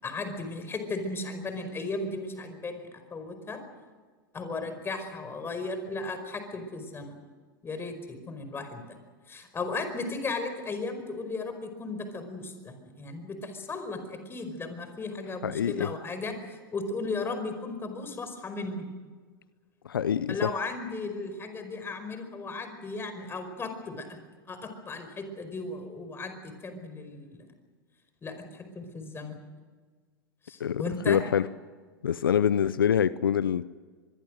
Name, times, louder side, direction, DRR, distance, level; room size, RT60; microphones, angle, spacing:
voice 1, 0.0-3.6 4.3-7.2 7.6-9.0 9.3-18.9 20.3-24.2 24.5-27.5 28.2-29.4 30.4-31.2, left 3 dB, 20° left, 8 dB, 5.0 m, -36 dB
voice 2, 15.4-15.9 19.9-20.5 30.6-31.5 32.0-33.7, left 8 dB, 85° left, 17 dB, 0.6 m, -25 dB
25.0 x 22.0 x 6.5 m, 1.5 s
hypercardioid pair, 100°, 11 cm